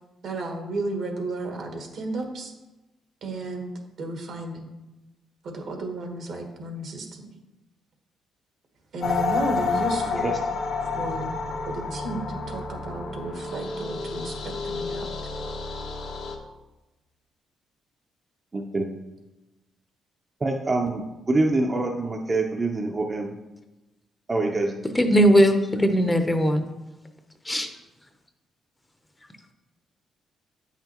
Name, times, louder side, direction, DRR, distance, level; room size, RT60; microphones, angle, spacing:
voice 1, 0.2-2.5 3.2-3.7 4.0-4.7 5.4-7.3 8.9-10.3 10.9-11.3 11.7-15.1, right 2 dB, 65° right, 3 dB, 1.3 m, -33 dB
sound 1, 9.0-16.3, left 4 dB, 75° left, 1.0 m, -29 dB
voice 2, 18.5-18.9 20.4-23.3 24.3-24.8, right 2 dB, 25° right, 1 dB, 0.6 m, -25 dB
voice 3, 25.0-26.6 27.5-27.7, equal, 15° left, 6 dB, 0.7 m, -19 dB
8.3 x 5.7 x 3.0 m, 1.0 s
cardioid pair, 90°, 0 cm